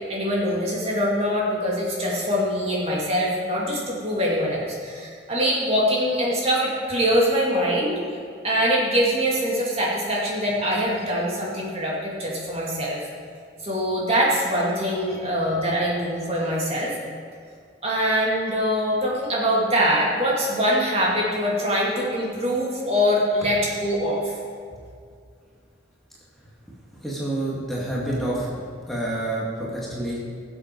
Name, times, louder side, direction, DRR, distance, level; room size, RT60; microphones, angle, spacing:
voice 1, 0.0-8.0 8.4-13.1 13.6-17.0 17.8-24.4, equal, 35° right, -4 dB, 2.6 m, -23 dB
voice 2, 27.0-30.2, right 1 dB, ahead, -7 dB, 2.1 m, -28 dB
19.0 x 7.8 x 4.7 m, 2.2 s
head